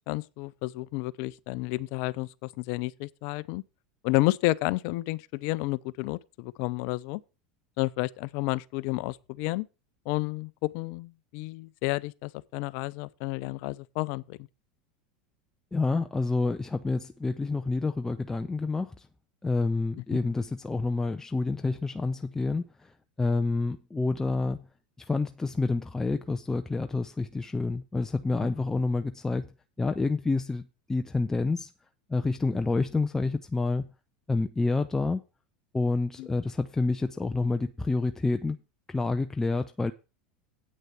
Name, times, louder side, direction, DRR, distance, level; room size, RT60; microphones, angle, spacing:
voice 1, 0.1-3.6 4.0-7.2 7.8-9.7 10.1-14.4 20.0-20.2 36.2-36.3, left 20 dB, 60° left, 0.5 m, -31 dB
voice 2, 15.7-19.1 19.4-22.9 23.2-24.7 25.1-29.5 29.8-30.6 30.9-31.7 32.1-33.9 34.3-35.2 35.7-38.6 38.9-39.9, left 3 dB, 10° left, 0.6 m, -28 dB
8.8 x 6.4 x 5.9 m
hypercardioid pair, 90°, 4 cm